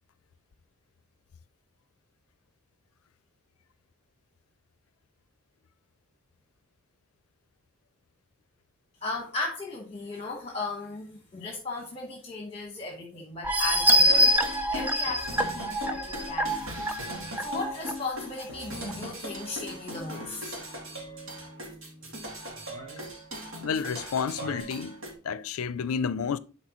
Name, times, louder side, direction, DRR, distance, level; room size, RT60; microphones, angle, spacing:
voice 1, 9.0-14.4 14.7-20.7, left 3 dB, 30° left, 1.1 m, -36 dB
sound 1, 13.4-17.9 18.4-18.5 18.9-19.0, equal, 10° right, 0.5 m, -25 dB
sound 2, 13.9-25.1, equal, 70° right, 2.2 m, -40 dB
sound 3, 22.0-24.6, right 1 dB, 30° right, 4.2 m, -46 dB
voice 2, 23.6-26.4, left 6 dB, 90° left, 0.4 m, -30 dB
11.0 x 4.3 x 3.0 m
head